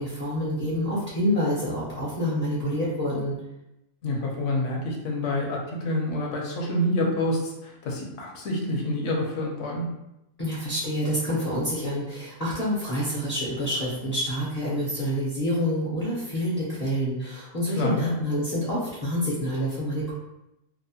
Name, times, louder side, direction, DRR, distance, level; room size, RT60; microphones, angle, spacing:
voice 1, 0.0-3.3 10.4-20.1, equal, 45° left, -7 dB, 0.5 m, -27 dB
voice 2, 4.0-9.8 17.8-18.1, left 1 dB, 70° left, -1 dB, 0.9 m, -27 dB
2.7 x 2.0 x 2.7 m, 0.89 s
omnidirectional pair, 1.4 m